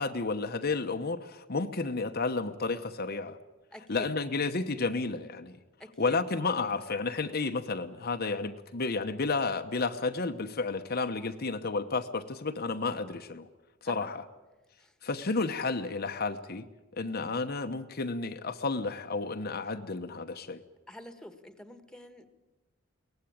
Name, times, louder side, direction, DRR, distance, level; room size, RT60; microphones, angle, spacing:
voice 1, 0.0-3.4 3.9-5.6 6.0-13.5 13.8-14.2 15.0-16.7 16.9-20.6, left 3 dB, 50° left, 7 dB, 1.0 m, -31 dB
voice 2, 3.7-4.1 5.8-6.2 13.9-14.1 14.8-14.9 20.9-22.3, equal, 5° left, 9 dB, 1.6 m, -47 dB
22.5 x 18.5 x 8.8 m, 1.2 s
head